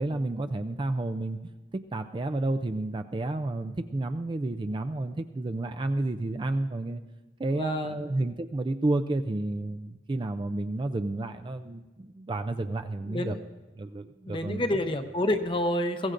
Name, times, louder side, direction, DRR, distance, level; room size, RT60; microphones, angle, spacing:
voice 1, 0.0-1.4 1.7-7.0 7.4-13.4 13.8-14.6, right 2 dB, 25° right, 9 dB, 0.4 m, -31 dB
voice 2, 7.5-8.1 13.1-13.4 14.3-16.1, left 1 dB, 30° left, 8 dB, 0.7 m, -29 dB
21.5 x 16.0 x 2.5 m, 1.2 s
head